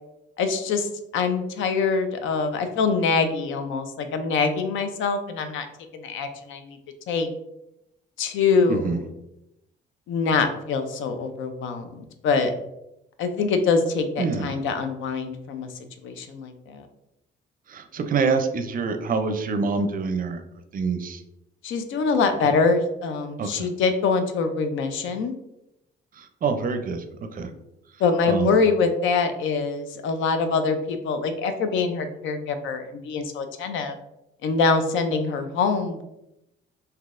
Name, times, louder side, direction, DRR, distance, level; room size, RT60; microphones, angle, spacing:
voice 1, 0.4-5.7 5.9-6.8 7.1-7.3 8.2-9.0 10.1-12.5 13.2-15.7 16.0-16.9 21.6-25.3 28.0-33.9 34.4-36.0, left 4 dB, 80° left, 8 dB, 0.5 m, -24 dB
voice 2, 14.2-14.6 17.7-20.4 20.7-21.2 23.4-23.7 26.2-27.0 27.3-27.5 28.3-28.5, right 4 dB, 45° right, 7 dB, 0.4 m, -26 dB
3.8 x 2.7 x 2.5 m, 0.88 s
cardioid pair, 90°, 20 cm